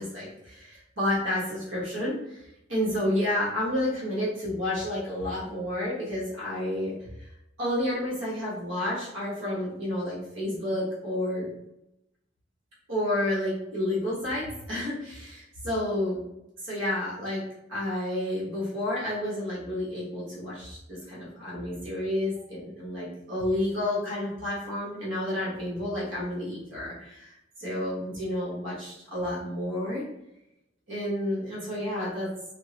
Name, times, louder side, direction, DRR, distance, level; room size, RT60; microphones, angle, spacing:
voice 1, 0.0-7.3 7.6-11.5 12.9-16.2 16.6-17.4 17.7-30.0 30.9-32.3, left 1 dB, 75° right, -6 dB, 1.2 m, -30 dB
3.6 x 2.0 x 2.8 m, 0.85 s
head